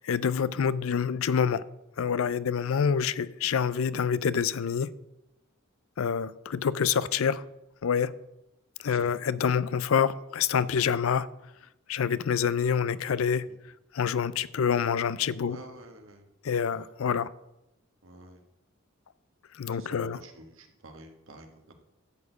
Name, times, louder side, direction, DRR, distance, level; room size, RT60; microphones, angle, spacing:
voice 1, 0.0-1.6 2.0-4.9 6.0-7.4 7.8-8.1 8.8-11.3 11.9-13.4 13.9-15.6 16.4-17.3 19.6-20.2, left 7 dB, 75° left, 0.4 m, -27 dB
voice 2, 8.8-9.1 13.5-13.6 15.4-16.3 18.0-18.4 19.7-21.8, right 2 dB, 65° right, 1.6 m, -49 dB
12.0 x 4.3 x 8.2 m
head